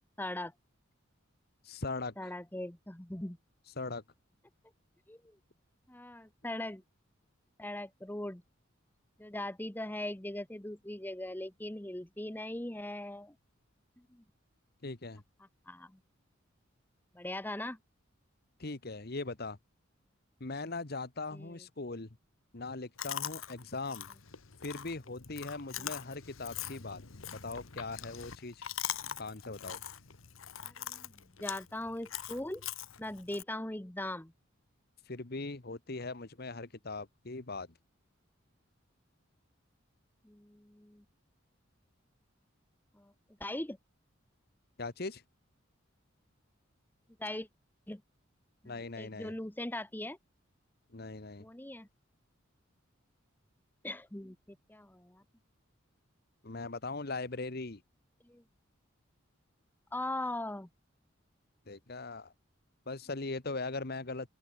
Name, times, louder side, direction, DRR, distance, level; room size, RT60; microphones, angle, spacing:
voice 1, 0.2-0.5 2.2-3.4 5.1-5.2 5.9-6.8 7.6-8.4 9.2-13.3 14.1-14.2 15.7-16.0 17.1-17.8 21.3-21.5 25.8-25.9 30.6-31.1 31.4-32.7 33.0-34.3 40.2-41.0 43.0-43.1 43.4-43.8 47.2-47.5 47.9-48.0 48.6-50.2 51.4-51.9 53.8-55.2 58.3-58.4 59.9-60.7, left 1 dB, 10° left, 0.9 m, -40 dB
voice 2, 1.6-2.3 3.8-4.0 14.8-15.2 18.6-19.6 20.4-22.1 22.5-24.1 24.6-27.0 27.3-28.6 29.2-29.8 35.1-37.7 44.8-45.2 48.6-49.4 50.9-51.4 56.4-57.8 61.7-62.3 62.9-64.3, left 3 dB, 50° left, 1.3 m, -40 dB
Chewing mastication, 23.0-33.4, left 10 dB, 90° left, 1.4 m, -43 dB
open air
head